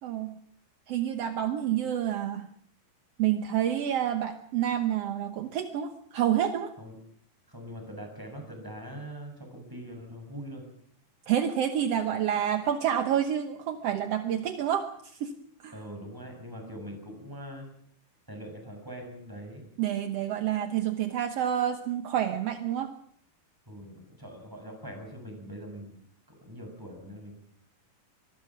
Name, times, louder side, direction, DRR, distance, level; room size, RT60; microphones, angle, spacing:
voice 1, 0.0-0.3 0.9-2.5 3.2-6.7 11.3-15.3 15.6-15.7 19.8-22.9, right 10 dB, 65° right, 8 dB, 1.5 m, -28 dB
voice 2, 7.5-10.6 15.7-17.7 18.3-19.6 23.7-26.0 26.4-27.3, equal, 5° right, 3 dB, 7.0 m, -42 dB
24.5 x 21.5 x 6.1 m, 0.64 s
omnidirectional pair, 4.2 m